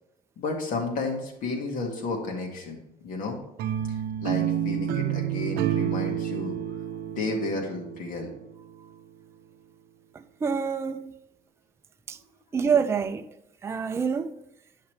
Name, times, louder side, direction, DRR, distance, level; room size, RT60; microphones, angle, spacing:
voice 1, 0.4-3.4 4.2-6.6 7.1-8.3, left 3 dB, 60° left, 2.0 m, -32 dB
sound 1, 3.6-8.7, right 11 dB, 75° right, 0.5 m, -29 dB
voice 2, 10.1-11.1 12.1-12.2 12.5-13.3 13.6-14.3, right 6 dB, 15° right, 0.4 m, -27 dB
10.5 x 5.7 x 3.2 m
cardioid pair, 155°, 16 cm